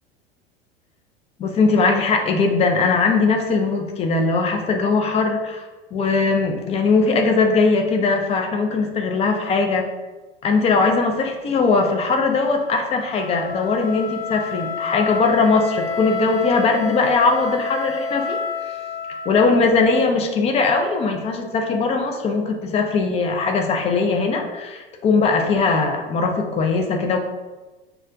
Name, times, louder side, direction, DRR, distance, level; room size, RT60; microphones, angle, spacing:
voice 1, 1.4-5.6 5.9-9.9 10.4-18.8 19.3-27.2, left 4 dB, 20° left, 3 dB, 0.5 m, -20 dB
Wind instrument woodwind instrument, 12.1-20.2, left 4 dB, 15° right, 1.4 m, -30 dB
6.2 x 2.3 x 2.5 m, 1.2 s
figure-of-eight pair, 80°, 30 cm